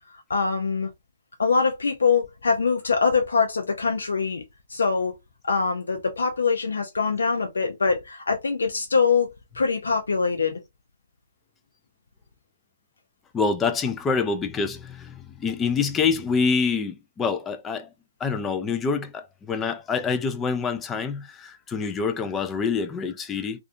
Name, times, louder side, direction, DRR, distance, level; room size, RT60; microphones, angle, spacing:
voice 1, 0.3-0.9 1.4-4.4 4.7-5.2 5.4-9.3 9.5-10.6, left 5 dB, 75° left, 0.5 m, -23 dB
voice 2, 13.3-17.9 18.2-23.6, left 5 dB, 15° left, 0.3 m, -26 dB
2.4 x 2.3 x 2.5 m
figure-of-eight pair, 130°, 0 cm